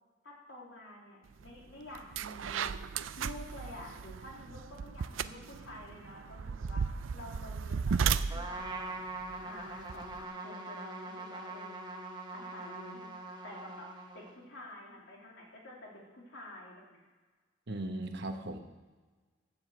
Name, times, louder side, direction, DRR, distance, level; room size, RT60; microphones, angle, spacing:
voice 1, 0.2-2.7 3.1-6.8 7.1-8.9 9.4-11.8 12.3-13.1 13.4-13.9 14.1-17.0, left 1 dB, 70° left, -2 dB, 3.0 m, -49 dB
sound 1, 1.4-1.6 1.9-10.2, right 6 dB, 85° right, 0.5 m, -35 dB
Trumpet, 8.3-14.5, right 2 dB, 25° right, 1.3 m, -43 dB
voice 2, 17.7-18.6, right 1 dB, 60° right, 5 dB, 1.2 m, -37 dB
12.5 x 7.2 x 7.8 m, 1.4 s
head